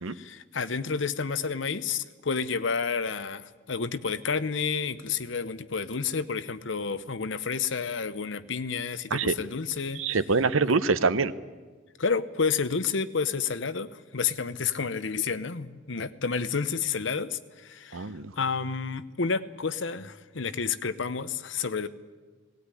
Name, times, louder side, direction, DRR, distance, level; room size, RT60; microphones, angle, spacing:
voice 1, 0.1-10.0 12.0-18.1 18.4-21.9, left 5 dB, 65° left, 14 dB, 0.9 m, -30 dB
voice 2, 9.9-11.3 17.9-18.3, right 4 dB, 85° right, 15 dB, 0.9 m, -25 dB
18.5 x 17.5 x 9.9 m, 1.4 s
head